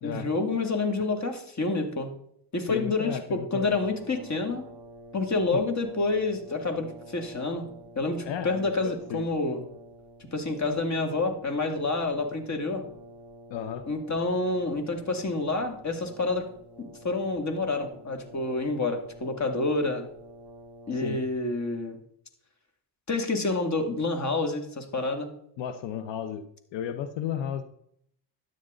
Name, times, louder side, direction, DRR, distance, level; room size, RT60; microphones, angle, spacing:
voice 1, 0.0-2.1 2.5-4.7 5.1-7.7 8.0-9.6 10.3-12.8 13.9-16.5 16.8-20.0 20.9-22.0 23.1-25.3, left 3 dB, 40° left, 6 dB, 2.5 m, -28 dB
voice 2, 2.7-3.8 5.5-5.6 8.3-9.2 13.5-13.8 20.9-21.2 25.6-26.4 26.7-27.6, left 9 dB, 85° left, 10 dB, 0.9 m, -34 dB
Brass instrument, 3.6-21.4, right 1 dB, 5° right, 4.1 m, -49 dB
12.5 x 9.3 x 3.9 m, 0.68 s
cardioid pair, 80°, 43 cm